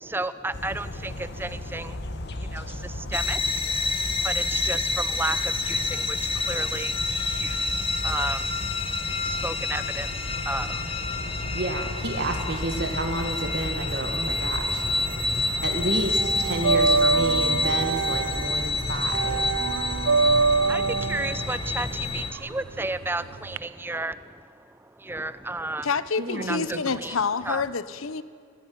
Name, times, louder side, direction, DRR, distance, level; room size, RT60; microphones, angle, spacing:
voice 1, 0.0-2.0 2.3-3.7 4.2-11.1 15.5-15.6 19.8-19.9 20.7-25.9 26.4-27.2 27.5-27.6, right 2 dB, 10° right, 14 dB, 0.5 m, -33 dB
sound 1, 0.5-19.6, left 1 dB, 50° left, 1.3 m, -36 dB
sound 2, 3.1-22.3, left 3 dB, 25° left, 1.2 m, -28 dB
voice 2, 11.5-14.8 15.6-19.5 26.2-26.9, right 2 dB, 55° right, 4 dB, 1.7 m, -30 dB
sound 3, 14.3-15.4 15.7-23.6, right 4 dB, 75° right, 0.5 m, -25 dB
voice 3, 25.8-28.2, left 5 dB, 75° left, 16 dB, 0.8 m, -27 dB
20.0 x 15.0 x 9.5 m, 2.3 s
head